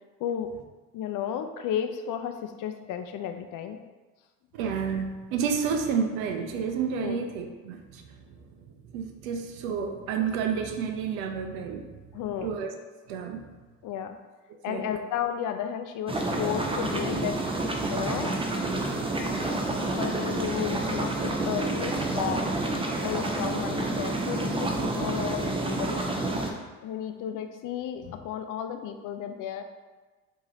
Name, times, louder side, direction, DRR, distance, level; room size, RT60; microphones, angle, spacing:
voice 1, 0.2-0.5 0.9-3.8 7.0-7.2 12.1-12.5 13.8-14.2 14.6-17.3 17.9-18.4 19.8-22.5 23.0-26.0 26.8-29.6, left 9 dB, 50° left, 8 dB, 0.5 m, -33 dB
voice 2, 4.5-8.5 8.9-11.9 12.4-12.7 13.1-13.5 14.7-14.9, right 6 dB, 80° right, 5 dB, 0.6 m, -30 dB
sound 1, 16.1-26.5, right 2 dB, 15° right, 0.6 m, -29 dB
4.7 x 2.8 x 2.7 m, 1.3 s
hypercardioid pair, 60°, 41 cm